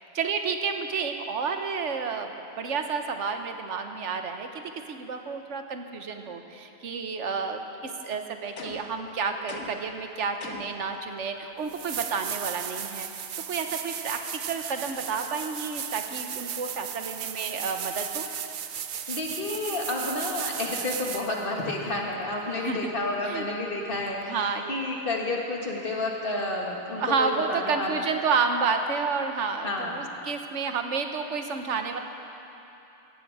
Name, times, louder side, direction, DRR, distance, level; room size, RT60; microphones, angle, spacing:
voice 1, 0.1-13.1 13.5-14.2 14.5-18.3 22.6-22.8 23.3-23.5 24.3-24.8 27.0-32.0, right 5 dB, 80° right, 6 dB, 1.3 m, -30 dB
sound 1, 8.6-9.0 9.5-9.9 10.4-10.8, left 3 dB, 80° left, 1.6 m, -40 dB
sound 2, 11.2-11.3 11.7-21.4 24.2-24.3, right 8 dB, 55° right, 0.6 m, -35 dB
voice 2, 19.1-24.2 24.7-28.0 29.6-30.0, left 2 dB, 50° left, -1 dB, 2.0 m, -30 dB
17.0 x 15.0 x 4.8 m, 3.0 s
omnidirectional pair, 1.2 m